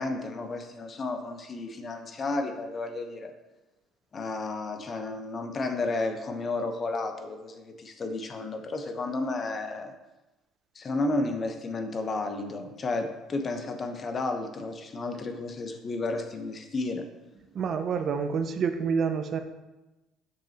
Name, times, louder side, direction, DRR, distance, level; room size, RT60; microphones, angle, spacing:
voice 1, 0.0-3.3 4.1-9.9 10.7-17.0, left 2 dB, 35° left, 6 dB, 0.9 m, -32 dB
voice 2, 17.5-19.4, right 6 dB, 50° right, 8 dB, 0.6 m, -28 dB
6.7 x 6.2 x 2.9 m, 1.0 s
supercardioid pair, 85°, 0 cm